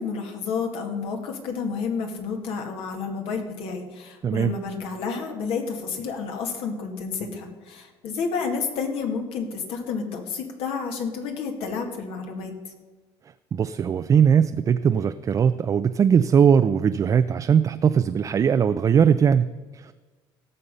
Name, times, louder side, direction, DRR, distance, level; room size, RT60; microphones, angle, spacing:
voice 1, 0.0-12.7, left 5 dB, 70° left, 4 dB, 2.2 m, -30 dB
voice 2, 4.2-4.5 13.5-19.9, right 7 dB, 35° right, 10 dB, 0.4 m, -20 dB
17.0 x 6.7 x 5.5 m, 1.3 s
cardioid pair, 110°, 10 cm